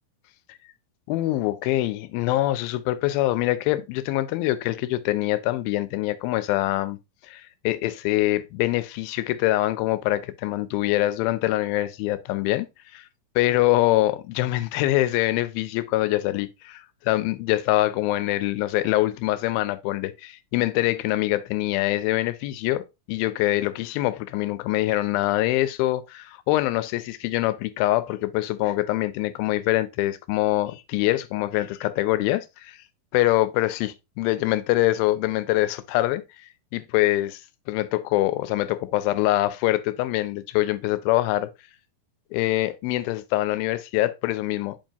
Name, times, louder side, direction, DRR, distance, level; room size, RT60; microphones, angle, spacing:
voice 1, 1.1-7.0 7.3-12.7 12.9-13.0 13.4-22.8 23.1-32.8 33.1-36.2 36.7-37.4 37.7-41.5 42.3-44.9, left 16 dB, 85° left, 2.4 m, -24 dB
7.4 x 5.3 x 2.7 m
omnidirectional pair, 4.2 m